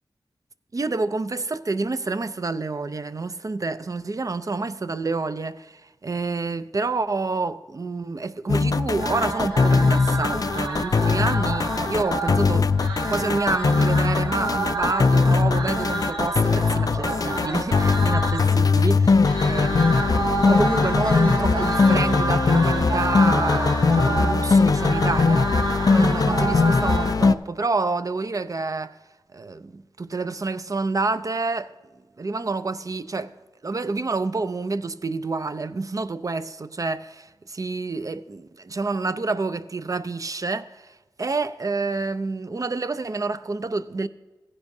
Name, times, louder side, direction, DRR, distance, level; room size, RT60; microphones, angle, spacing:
voice 1, 0.7-12.7 13.1-25.5 25.9-29.0 29.3-31.7 32.2-33.3 33.6-44.1, right 3 dB, 40° right, 0.5 m, -28 dB
sound 1, 8.5-27.3, left 4 dB, 45° left, 0.3 m, -20 dB
sound 2, 9.0-27.1, right 2 dB, 70° right, 1.9 m, -29 dB
16.0 x 9.8 x 2.7 m
wide cardioid pair, 70°, 9 cm